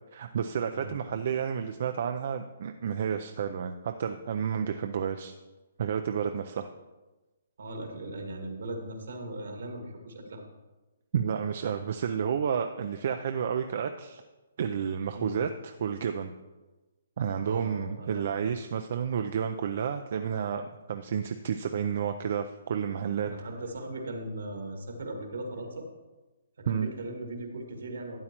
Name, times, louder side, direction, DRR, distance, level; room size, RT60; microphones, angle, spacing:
voice 1, 0.1-5.3 5.8-6.7 11.1-14.2 14.6-16.3 17.2-23.3 26.7-26.9, right 7 dB, 55° right, 6 dB, 0.5 m, -31 dB
voice 2, 0.7-1.2 6.5-6.6 7.6-10.4 15.1-15.3 17.4-18.3 23.2-25.9 26.6-28.2, right 1 dB, 80° right, 3 dB, 1.8 m, -38 dB
12.5 x 8.5 x 3.0 m, 1.1 s
hypercardioid pair, 145°, 0 cm